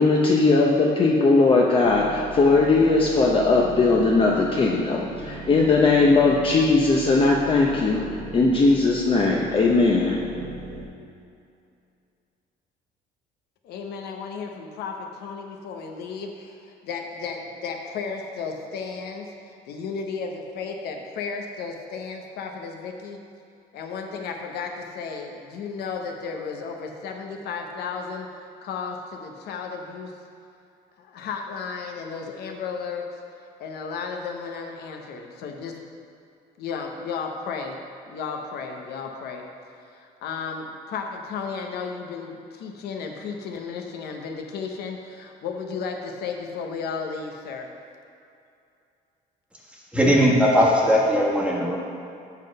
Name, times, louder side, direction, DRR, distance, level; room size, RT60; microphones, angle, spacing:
voice 1, 0.0-8.0 8.3-10.2, left 3 dB, 30° left, -2 dB, 0.6 m, -19 dB
sound 1, 1.8-10.9, right 3 dB, 70° right, 0.9 m, -38 dB
voice 2, 13.6-23.2 23.7-28.3 28.6-30.1 31.0-33.1 33.6-35.8 36.6-37.7 38.0-39.4 39.8-47.7, left 5 dB, 75° left, 2 dB, 0.7 m, -34 dB
voice 3, 49.9-51.8, equal, 5° right, -4 dB, 1.2 m, -19 dB
7.3 x 3.9 x 5.2 m, 2.6 s
cardioid pair, 110°, 17 cm